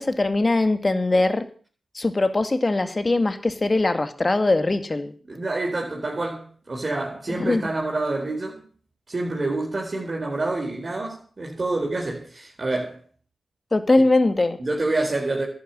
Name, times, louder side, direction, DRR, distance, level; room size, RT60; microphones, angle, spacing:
voice 1, 0.0-1.4 2.0-5.1 7.3-7.7 13.7-14.6, left 2 dB, 35° left, 2.0 m, -21 dB
voice 2, 5.3-8.6 9.1-13.0 14.6-15.5, right 2 dB, 45° right, 4.3 m, -27 dB
11.5 x 8.0 x 9.8 m
supercardioid pair, 40°, 0 cm